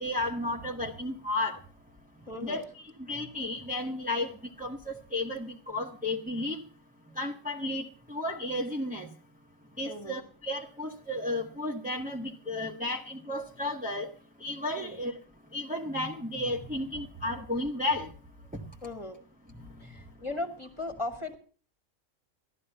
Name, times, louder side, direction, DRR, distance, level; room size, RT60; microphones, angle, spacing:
voice 1, 0.0-1.6 2.4-2.6 3.0-4.3 4.6-6.6 7.2-9.1 9.8-14.1 14.4-15.2 15.5-18.1 18.5-18.6, left 1 dB, 5° right, 0 dB, 1.3 m, -33 dB
voice 2, 2.3-2.7 9.8-10.2 14.8-15.0 18.8-19.2 19.8-21.4, left 2 dB, 20° left, 6 dB, 2.0 m, -37 dB
15.0 x 12.0 x 5.6 m, 0.40 s
omnidirectional pair, 1.4 m